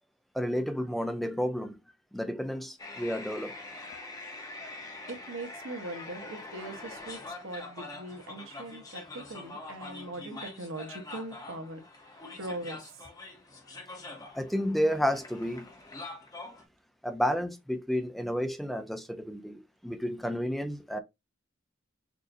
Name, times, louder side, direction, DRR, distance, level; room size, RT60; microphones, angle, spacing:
voice 1, 0.3-1.8 2.1-3.6 14.3-15.7 17.0-21.0, equal, ahead, 0.5 m, -31 dB
sound 1, 2.8-16.6, left 2 dB, 20° left, 0.9 m, -44 dB
voice 2, 5.1-13.1, right 2 dB, 80° right, 1.1 m, -41 dB
6.4 x 2.6 x 2.6 m
head